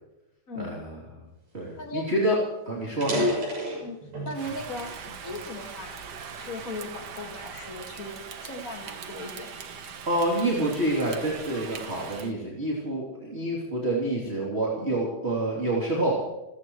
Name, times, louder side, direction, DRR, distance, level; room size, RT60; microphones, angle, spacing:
voice 1, 0.5-1.0 1.5-2.4 2.6-3.2 10.1-16.2, right 1 dB, 20° right, -4 dB, 3.2 m, -27 dB
voice 2, 1.8-2.1 3.8-4.0 4.2-5.0 5.2-6.0 6.4-8.1 8.4-9.5, left 2 dB, 30° left, 3 dB, 2.0 m, -37 dB
sound 1, 1.8-1.9 2.2-2.4 2.9-4.5 5.0-6.3 6.9-7.1 7.8-9.8, left 1 dB, 60° right, 7.8 m, -31 dB
Rain, 4.3-12.3, right 6 dB, 80° right, 0.9 m, -41 dB
28.5 x 15.5 x 3.2 m, 0.95 s
omnidirectional pair, 3.7 m